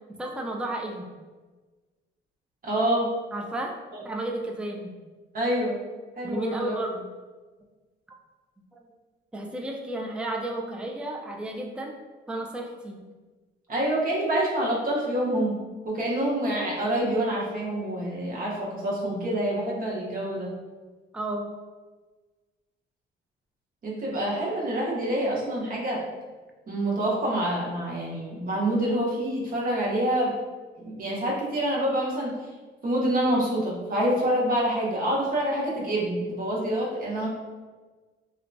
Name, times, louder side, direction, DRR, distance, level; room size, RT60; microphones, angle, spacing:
voice 1, 0.2-1.1 3.3-3.8 4.0-4.9 6.2-7.1 8.7-8.9 9.3-12.0 12.3-13.0 21.1-21.5, right 1 dB, 5° right, 1 dB, 0.3 m, -32 dB
voice 2, 2.6-3.1 5.3-5.8 6.2-6.8 13.7-15.5 15.8-20.5 23.8-26.0 26.7-30.4 30.8-32.3 32.8-37.3, right 1 dB, 45° right, -4 dB, 0.9 m, -26 dB
2.8 x 2.2 x 2.6 m, 1.3 s
cardioid pair, 90°, 20 cm